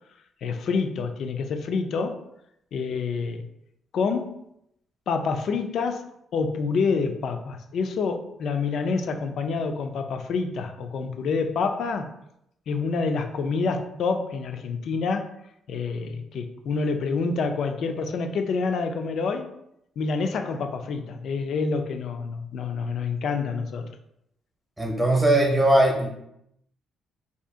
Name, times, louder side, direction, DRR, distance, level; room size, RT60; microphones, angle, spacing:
voice 1, 0.4-2.2 2.7-3.4 3.9-4.4 5.1-12.1 12.7-15.3 15.7-19.5 20.0-23.9, left 4 dB, 65° left, 6 dB, 0.3 m, -27 dB
voice 2, 24.8-26.1, right 1 dB, 15° right, -1 dB, 0.8 m, -20 dB
2.7 x 2.4 x 3.5 m, 0.78 s
cardioid pair, 90°, 0 cm